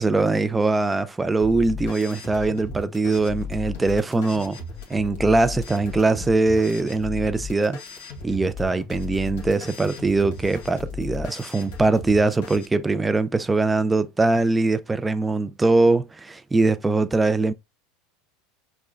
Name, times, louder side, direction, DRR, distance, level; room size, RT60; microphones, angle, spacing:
voice 1, 0.0-4.6 4.9-7.8 8.2-17.5, right 3 dB, 15° right, 0.3 m, -22 dB
sound 1, 1.4-12.7, left 5 dB, 70° left, 1.3 m, -36 dB
4.9 x 2.2 x 2.4 m
supercardioid pair, 105°, 0 cm